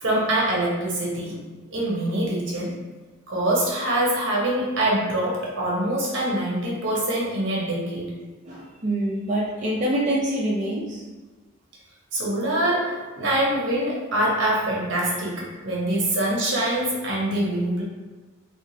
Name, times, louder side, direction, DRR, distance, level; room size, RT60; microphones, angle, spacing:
voice 1, 0.0-1.4 1.7-2.8 3.3-8.1 12.1-17.8, right 1 dB, 65° right, -4 dB, 1.0 m, -24 dB
voice 2, 8.5-11.0, right 1 dB, 35° right, -6 dB, 0.5 m, -25 dB
3.6 x 3.2 x 2.8 m, 1.3 s
head